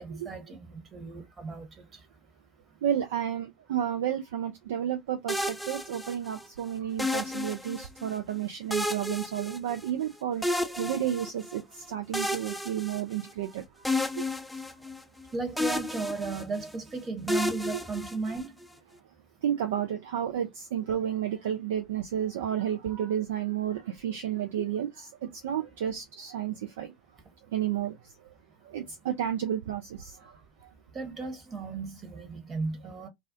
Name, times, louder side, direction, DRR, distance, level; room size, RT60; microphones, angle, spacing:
voice 1, 0.0-1.7 15.3-18.5 30.9-33.1, right 3 dB, 30° right, 1.1 m, -35 dB
voice 2, 2.8-13.6 14.2-14.3 19.4-26.9 27.5-28.1 28.6-30.4, right 10 dB, 70° right, 0.4 m, -31 dB
sound 1, 5.3-6.5 7.0-8.1 8.7-10.1 10.4-11.6 12.1-13.5 13.9-15.3 15.6-16.8 17.3-18.6, left 1 dB, ahead, 0.4 m, -32 dB
2.3 x 2.1 x 2.6 m
figure-of-eight pair, 75°, 0 cm